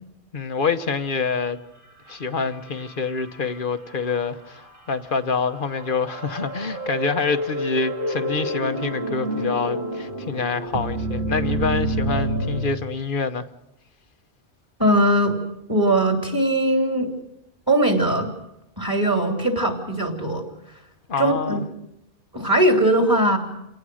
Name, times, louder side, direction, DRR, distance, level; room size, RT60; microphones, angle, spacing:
voice 1, 0.3-1.6 2.1-13.4 21.1-21.7, left 5 dB, 50° left, 1.1 m, -26 dB
sound 1, 2.1-3.6 4.0-4.1 5.2-12.7, right 1 dB, 50° right, 2.2 m, -28 dB
voice 2, 14.8-15.4 15.7-17.1 17.7-18.3 18.8-20.4 21.2-21.6 22.3-23.4, right 1 dB, 20° right, 3.3 m, -20 dB
28.5 x 18.5 x 6.3 m
omnidirectional pair, 1.2 m